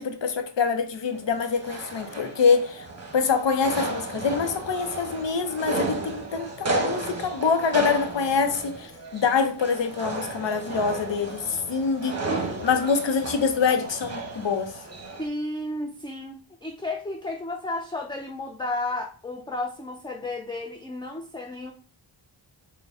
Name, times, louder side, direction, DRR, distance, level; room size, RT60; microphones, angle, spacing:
voice 1, 0.0-2.9 3.1-12.2 12.6-14.7, left 5 dB, 60° left, 0.7 m, -25 dB
sound 1, 1.1-15.3, right 2 dB, 30° right, 0.9 m, -33 dB
voice 2, 15.2-21.7, left 2 dB, 10° left, 0.4 m, -32 dB
3.8 x 2.2 x 3.6 m
cardioid pair, 45°, 50 cm